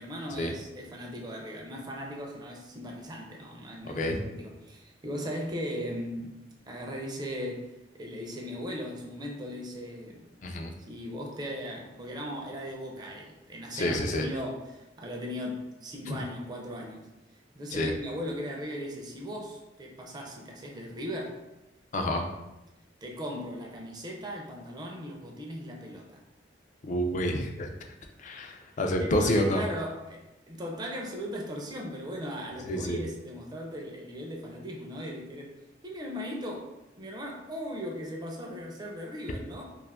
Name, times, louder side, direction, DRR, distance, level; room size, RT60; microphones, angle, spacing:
voice 1, 0.0-6.4 6.6-10.3 10.9-17.1 17.5-21.4 23.0-26.2 29.0-35.6 35.8-36.7 37.0-39.7, equal, 25° right, 0 dB, 0.4 m, -38 dB
voice 2, 3.8-4.2 10.4-10.7 13.7-14.3 16.1-16.2 17.7-17.9 21.9-22.2 26.8-27.7 28.2-29.6 32.7-33.0, left 1 dB, 45° left, 3 dB, 0.4 m, -28 dB
2.5 x 2.4 x 3.4 m, 0.96 s
head